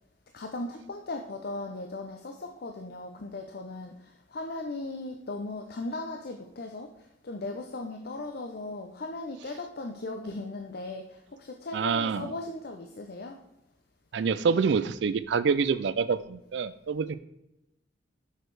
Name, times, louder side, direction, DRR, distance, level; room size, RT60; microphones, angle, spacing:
voice 1, 0.3-13.4, left 2 dB, 60° left, 4 dB, 0.7 m, -38 dB
voice 2, 11.7-12.3 14.1-17.2, right 5 dB, 70° right, 14 dB, 0.4 m, -26 dB
6.7 x 6.5 x 4.7 m, 0.88 s
head